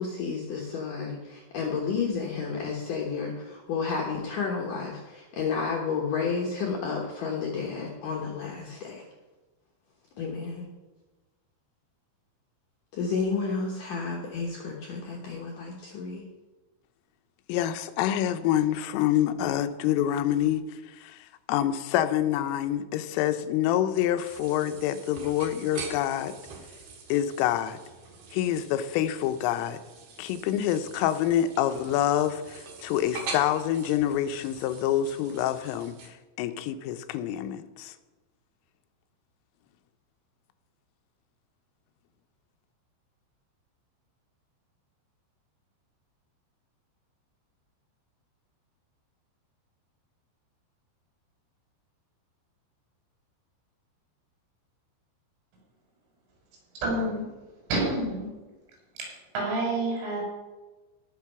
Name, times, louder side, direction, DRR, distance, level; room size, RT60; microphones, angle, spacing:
voice 1, 0.0-9.1 10.2-10.7 12.9-16.2, left 5 dB, 70° left, -1 dB, 2.1 m, -31 dB
voice 2, 17.5-26.4 27.1-27.8 28.3-29.8 30.2-37.9, left 11 dB, 90° left, 10 dB, 3.4 m, -27 dB
sound 1, 24.2-36.1, right 4 dB, 60° right, 2.3 m, -44 dB
voice 3, 56.8-57.3 57.7-58.3 59.0-60.2, right 2 dB, 85° right, -2 dB, 6.9 m, -28 dB
18.0 x 6.3 x 5.8 m, 1.2 s
omnidirectional pair, 5.7 m